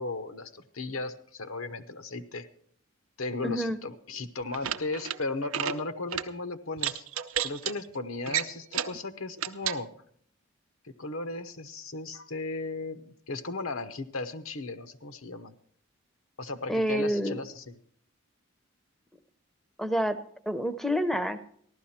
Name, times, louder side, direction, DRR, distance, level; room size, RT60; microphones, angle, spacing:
voice 1, 0.0-2.5 3.2-7.1 7.4-9.9 11.0-15.5 16.4-17.6, left 3 dB, 75° left, 10 dB, 0.9 m, -36 dB
voice 2, 3.4-3.8 16.7-17.4 19.8-20.2 20.5-21.4, equal, ahead, 10 dB, 0.6 m, -28 dB
sound 1, 4.4-5.2 5.5-5.8 6.1-6.3 6.8-7.7 8.3-9.0 9.4-9.8, right 10 dB, 80° right, 0.6 m, -31 dB
14.5 x 12.5 x 4.3 m, 0.63 s
head